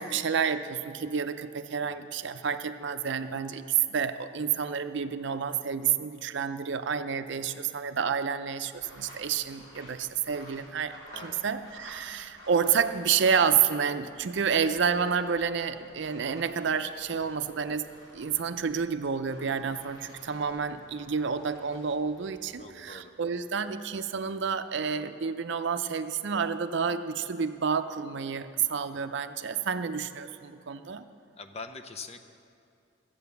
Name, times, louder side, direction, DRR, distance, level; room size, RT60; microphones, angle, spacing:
voice 1, 0.0-10.9 11.2-17.9 18.1-31.1, right 6 dB, 60° right, 10 dB, 0.5 m, -29 dB
sound 1, 8.7-13.8 14.1-22.6, equal, 85° left, 3.8 m, -52 dB
voice 2, 22.6-23.1 31.4-32.2, left 4 dB, 30° left, 7 dB, 0.6 m, -44 dB
14.0 x 8.5 x 6.9 m, 2.5 s
head